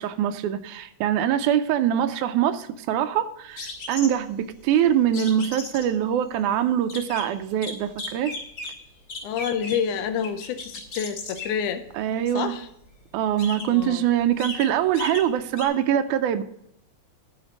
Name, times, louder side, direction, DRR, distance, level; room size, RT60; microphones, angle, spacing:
voice 1, 0.0-8.3 12.0-12.5 13.1-16.4, right 10 dB, 90° right, 2.1 m, -23 dB
sound 1, 3.6-4.3 5.1-5.8 6.8-7.2 7.6-8.7 9.1-9.9 10.2-11.6 12.8-12.9 13.3-13.8 14.2-14.7 14.9-15.3 15.6-15.7, left 3 dB, 45° left, 3.1 m, -35 dB
voice 2, 9.2-11.8 12.3-12.7 13.7-14.1, left 8 dB, 85° left, 2.2 m, -28 dB
11.5 x 5.0 x 6.0 m
omnidirectional pair, 3.4 m